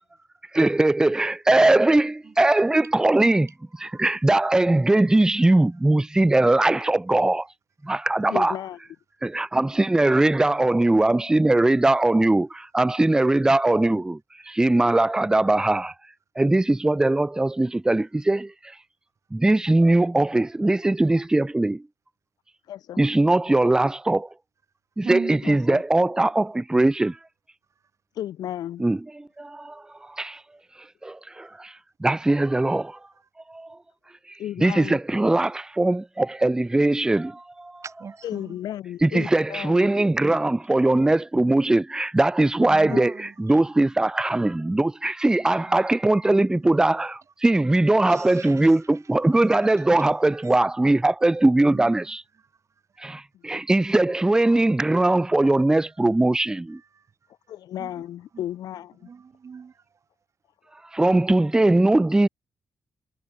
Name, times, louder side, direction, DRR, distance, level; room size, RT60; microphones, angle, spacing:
voice 1, 0.5-3.5 3.8-7.5 7.8-8.5 9.2-14.2 14.5-15.9 16.4-18.5 19.3-21.8 23.0-24.3 25.0-27.2 28.8-30.4 31.0-31.7 32.0-33.0 33.5-33.8 34.3-37.8 39.0-43.1 43.4-52.2 53.0-56.8 60.9-62.3, right 2 dB, 10° right, 0.4 m, -21 dB
voice 2, 8.3-8.8 22.7-23.1 25.4-25.8 28.1-28.9 34.4-35.0 38.2-39.9 42.9-43.0 53.3-53.4 57.5-59.1, left 11 dB, 90° left, 2.2 m, -34 dB
voice 3, 25.0-25.4 37.8-38.4 42.6-43.1 43.5-43.6 46.6-46.8 48.1-48.8 51.7-51.9 57.8-57.9 59.1-59.7, right 6 dB, 50° right, 1.2 m, -36 dB
cardioid pair, 75°, 7 cm